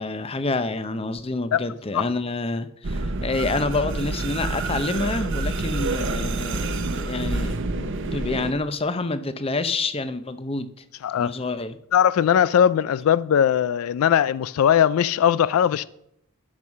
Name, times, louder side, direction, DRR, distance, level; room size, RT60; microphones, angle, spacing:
voice 1, 0.0-10.7 11.2-11.8, left 3 dB, 25° left, 0.6 m, -28 dB
sound 1, 2.8-8.5, right 2 dB, 60° right, 0.8 m, -28 dB
voice 2, 11.0-11.3 11.9-15.8, left 9 dB, 75° left, 0.3 m, -19 dB
12.5 x 5.5 x 6.3 m
head